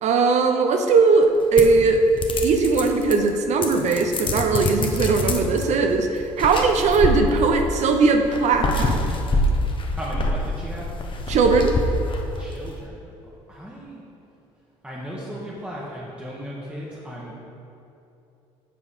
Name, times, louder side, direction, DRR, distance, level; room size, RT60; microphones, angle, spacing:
voice 1, 0.0-2.1 2.4-9.1 11.3-11.8, right 4 dB, 55° right, 5 dB, 0.6 m, -19 dB
sound 1, 1.6-3.3 3.6-5.6 6.3-7.7 8.2-12.5, left 2 dB, 35° left, 0.9 m, -25 dB
voice 2, 9.9-10.8 12.4-13.1 13.5-14.0 14.8-17.3, equal, 10° right, -5 dB, 1.2 m, -36 dB
7.5 x 4.0 x 5.1 m, 2.8 s
hypercardioid pair, 70°, 14 cm